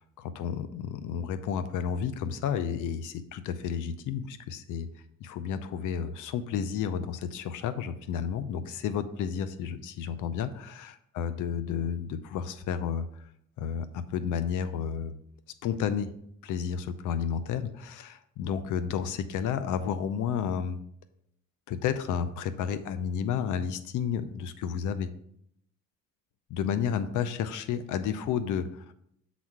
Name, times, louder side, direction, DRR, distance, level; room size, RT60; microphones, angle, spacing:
voice 1, 0.0-4.9 5.2-13.2 13.6-15.2 15.6-16.1 16.4-20.8 21.7-25.1 26.5-28.9, left 8 dB, 85° left, 12 dB, 0.6 m, -31 dB
7.2 x 4.1 x 4.6 m, 0.70 s
cardioid pair, 90°, 30 cm